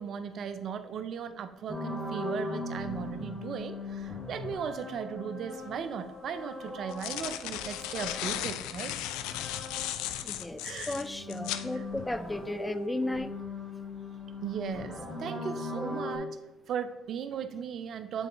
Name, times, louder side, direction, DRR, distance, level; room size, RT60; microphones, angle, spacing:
voice 1, 0.0-8.9 10.6-11.0 14.4-16.3 16.7-18.3, right 7 dB, 60° right, 11 dB, 0.5 m, -37 dB
sound 1, 1.7-10.3 10.6-16.2, left 2 dB, 5° right, 2.4 m, -40 dB
sound 2, 5.6-5.7 6.7-11.7, left 12 dB, 80° left, 0.3 m, -36 dB
voice 2, 10.2-10.6 10.9-13.3 15.8-16.0, left 2 dB, 15° left, 12 dB, 0.4 m, -34 dB
7.0 x 4.0 x 4.5 m, 1.0 s
supercardioid pair, 60°, 0 cm